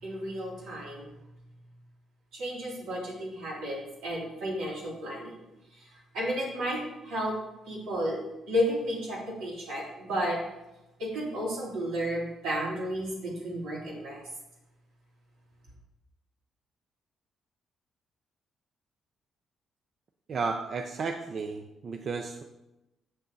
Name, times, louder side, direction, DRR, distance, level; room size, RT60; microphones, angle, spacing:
voice 1, 0.0-1.1 2.3-5.4 5.7-7.4 7.7-10.4 11.0-14.2, equal, 90° right, -5 dB, 3.1 m, -32 dB
voice 2, 20.3-22.4, right 4 dB, 50° right, 4 dB, 0.6 m, -33 dB
7.5 x 6.4 x 4.0 m, 0.97 s
cardioid pair, 90°, 0 cm